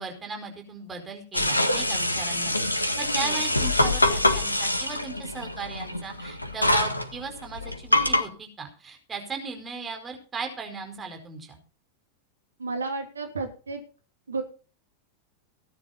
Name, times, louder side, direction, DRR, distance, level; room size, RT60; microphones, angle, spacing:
voice 1, 0.0-11.6, right 4 dB, 20° right, 4 dB, 4.8 m, -37 dB
sound 1, 1.3-8.2, left 1 dB, 85° left, 1.7 m, -25 dB
voice 2, 12.6-13.8 14.3-14.4, right 3 dB, 75° right, 4 dB, 2.9 m, -32 dB
18.0 x 10.5 x 4.2 m, 0.36 s
figure-of-eight pair, 90°, 0 cm